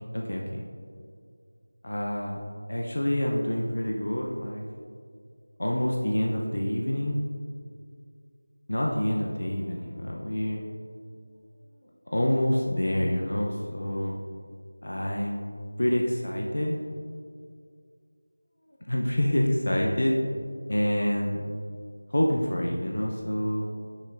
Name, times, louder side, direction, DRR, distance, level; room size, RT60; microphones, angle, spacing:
voice 1, 0.1-0.6 1.8-2.4 2.7-4.6 5.6-7.2 8.7-10.7 12.1-14.1 14.8-15.4 15.8-16.9 18.9-20.2 20.7-21.4 22.1-23.7, left 1 dB, 60° left, -1 dB, 0.7 m, -27 dB
9.8 x 6.0 x 2.5 m, 2.2 s
figure-of-eight pair, 180°, 0 cm